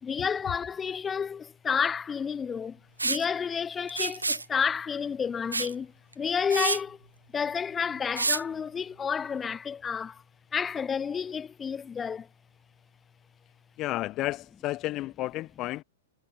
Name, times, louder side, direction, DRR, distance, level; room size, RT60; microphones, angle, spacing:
voice 1, 0.0-7.0 7.3-10.2 10.5-12.3, left 6 dB, 20° left, 2.4 m, -30 dB
Liquid, 3.0-3.2 3.9-4.5 5.5-5.7 6.1-6.2 6.5-6.8 8.2-8.4, right 3 dB, 90° right, 6.6 m, -28 dB
voice 2, 13.8-15.8, left 17 dB, 35° left, 6.6 m, -32 dB
figure-of-eight pair, 105°, 0 cm